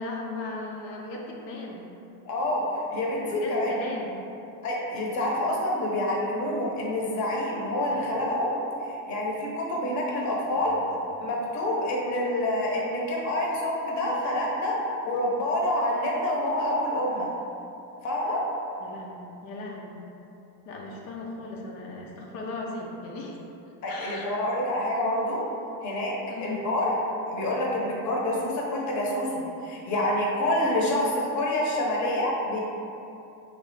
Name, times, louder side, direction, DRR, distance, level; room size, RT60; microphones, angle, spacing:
voice 1, 0.0-1.9 3.3-4.1 10.5-10.9 18.8-20.0 20.7-23.4 23.9-24.4 26.3-26.6, left 2 dB, 80° left, -2 dB, 0.7 m, -37 dB
voice 2, 2.3-3.7 4.6-8.5 8.9-10.8 11.2-14.7 15.0-17.3 18.0-18.4 23.8-25.4 25.8-26.1 26.4-27.0 27.3-32.6, left 1 dB, 35° left, -3 dB, 0.8 m, -27 dB
3.3 x 2.3 x 4.0 m, 2.7 s
supercardioid pair, 105°, 50 cm